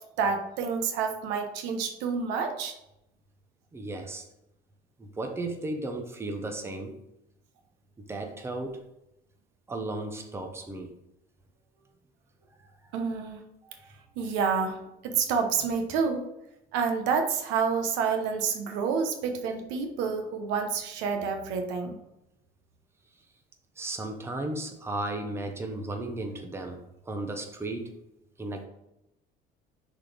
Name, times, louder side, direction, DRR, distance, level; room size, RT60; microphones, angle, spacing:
voice 1, 0.2-2.7 12.9-13.4 14.2-16.2 16.7-22.0, right 5 dB, 85° right, 5 dB, 1.1 m, -28 dB
voice 2, 3.7-4.2 5.0-6.9 8.0-8.8 9.7-10.9 12.6-12.7 13.6-14.0 23.8-27.9 28.4-28.7, right 2 dB, 15° right, 4 dB, 0.9 m, -35 dB
6.2 x 4.2 x 5.0 m, 0.85 s
cardioid pair, 135°, 18 cm